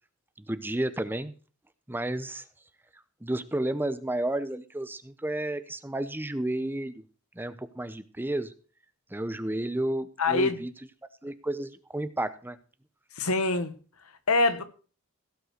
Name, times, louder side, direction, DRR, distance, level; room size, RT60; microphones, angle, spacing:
voice 1, 0.4-1.3 1.9-2.4 3.2-7.0 7.4-8.5 9.1-10.7 11.2-12.6, right 1 dB, 10° right, 0.6 m, -31 dB
voice 2, 10.2-10.6 13.2-13.7 14.3-14.6, left 3 dB, 80° left, 1.4 m, -24 dB
16.5 x 5.5 x 6.4 m
head